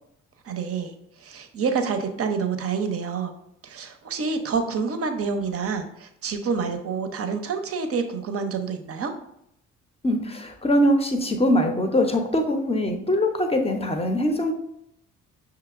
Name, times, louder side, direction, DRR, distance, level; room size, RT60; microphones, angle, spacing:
voice 1, 0.4-0.9 1.2-3.3 3.6-9.1, right 5 dB, 40° right, 6 dB, 0.6 m, -28 dB
voice 2, 10.0-14.5, left 1 dB, 15° left, 5 dB, 0.7 m, -22 dB
5.8 x 2.8 x 2.4 m, 0.77 s
figure-of-eight pair, 45°, 38 cm